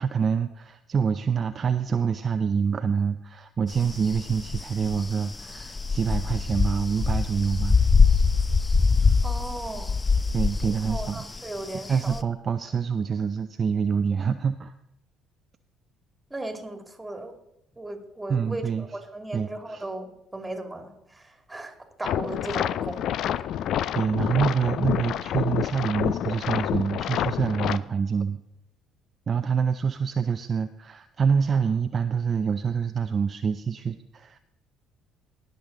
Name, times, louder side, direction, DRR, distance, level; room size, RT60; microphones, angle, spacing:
voice 1, 0.0-7.8 10.3-11.2 11.9-14.7 18.3-19.0 19.3-19.9 23.9-28.4 29.3-34.4, right 6 dB, 40° right, 9 dB, 0.5 m, -26 dB
sound 1, 3.7-12.2, left 4 dB, 25° left, 0.6 m, -24 dB
voice 2, 9.2-10.0 10.6-12.2 16.3-17.3 17.8-21.7 22.0-23.1, right 2 dB, 15° right, 5 dB, 2.4 m, -36 dB
sound 2, 22.0-27.8, left 11 dB, 60° left, 0.4 m, -28 dB
20.0 x 6.8 x 3.8 m, 0.82 s
hypercardioid pair, 60°, 0 cm